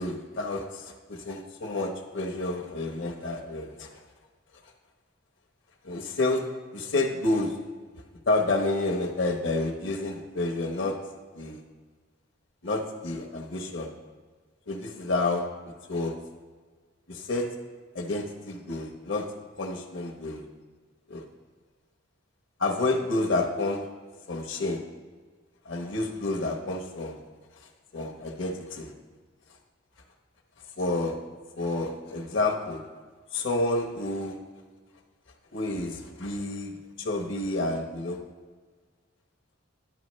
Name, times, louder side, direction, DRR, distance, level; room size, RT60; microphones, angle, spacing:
voice 1, 0.0-3.9 5.8-6.4 6.7-7.6 8.3-10.9 11.3-11.6 12.6-13.9 14.7-15.4 15.9-16.1 17.1-17.5 17.9-19.2 19.6-20.4 21.1-21.2 22.6-23.8 24.3-24.8 25.6-27.2 27.9-28.9 30.8-31.2 31.6-32.8 33.3-34.4 35.5-38.2, left 2 dB, 65° left, 2 dB, 1.1 m, -29 dB
11.5 x 5.3 x 3.2 m, 1.5 s
head